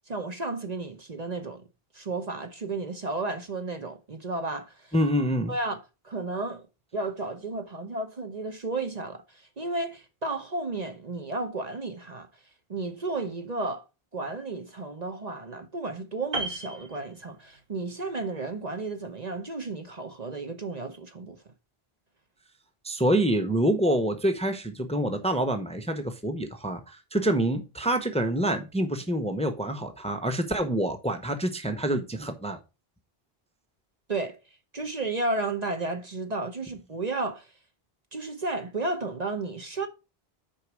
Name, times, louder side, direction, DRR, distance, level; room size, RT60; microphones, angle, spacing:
voice 1, 0.1-1.6 1.9-4.9 5.5-6.7 6.9-12.3 12.7-13.8 14.1-21.4 34.1-34.4 34.7-37.5 38.1-39.9, right 3 dB, 45° right, 1.0 m, -33 dB
voice 2, 4.9-5.5 22.8-32.6, right 1 dB, 5° left, 0.8 m, -26 dB
Piano, 16.3-17.8 18.1-18.3, right 2 dB, 70° right, 1.6 m, -35 dB
6.5 x 4.6 x 6.2 m
omnidirectional pair, 1.0 m